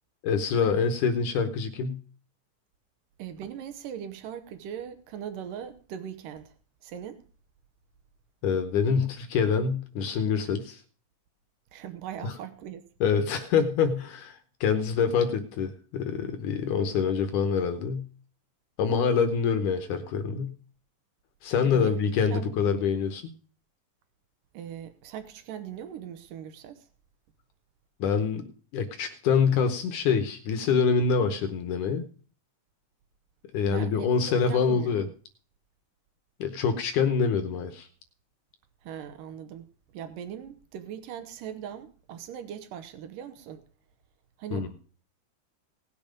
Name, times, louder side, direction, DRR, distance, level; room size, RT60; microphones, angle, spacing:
voice 1, 0.2-2.0 8.4-10.8 12.2-12.3 13.0-18.1 18.8-20.5 21.4-23.2 28.0-28.4 28.7-32.1 33.5-35.1 36.4-37.9 44.5-44.7, left 6 dB, 75° left, 2.4 m, -25 dB
voice 2, 3.2-6.5 6.8-7.2 11.7-12.8 21.6-21.9 22.3-22.6 24.5-26.9 33.7-34.1 34.5-35.1 38.8-43.6 44.4-44.8, right 9 dB, 85° right, 2.6 m, -40 dB
18.0 x 7.2 x 5.1 m
omnidirectional pair, 3.7 m